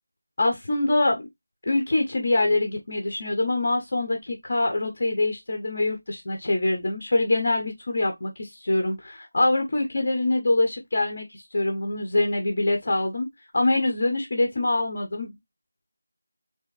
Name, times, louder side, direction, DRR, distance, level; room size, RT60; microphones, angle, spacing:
voice 1, 0.4-1.2 1.7-13.3 13.5-15.4, left 2 dB, 30° left, 0.6 m, -24 dB
3.4 x 3.2 x 3.1 m
figure-of-eight pair, 180°, 0 cm